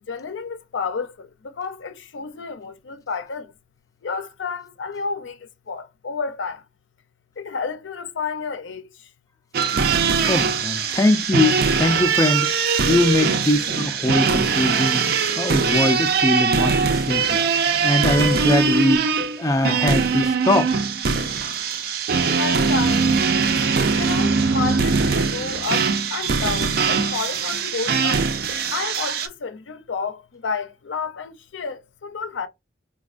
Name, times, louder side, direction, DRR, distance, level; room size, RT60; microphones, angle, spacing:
voice 1, 0.1-1.3 1.6-3.5 4.0-5.4 5.7-6.6 7.4-8.8 22.4-23.2 23.9-28.2 28.7-32.5, left 5 dB, 90° left, 0.5 m, -30 dB
sound 1, 9.5-29.3, right 5 dB, 55° right, 0.5 m, -21 dB
voice 2, 10.3-12.5 12.9-17.4 17.8-19.1 19.4-20.7, left 2 dB, 20° left, 0.4 m, -21 dB
4.2 x 2.2 x 2.4 m
head